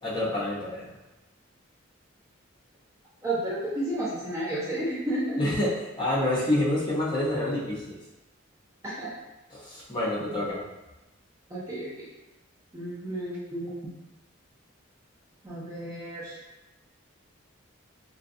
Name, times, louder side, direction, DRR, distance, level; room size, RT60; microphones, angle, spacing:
voice 1, 0.0-0.9 5.4-8.0 9.5-10.6, left 1 dB, 20° left, -8 dB, 0.7 m, -27 dB
voice 2, 3.2-5.4 8.8-9.1 11.5-12.0 12.7-13.7 15.4-16.4, right 1 dB, 15° right, -8 dB, 0.4 m, -32 dB
2.3 x 2.3 x 2.6 m, 1.0 s
head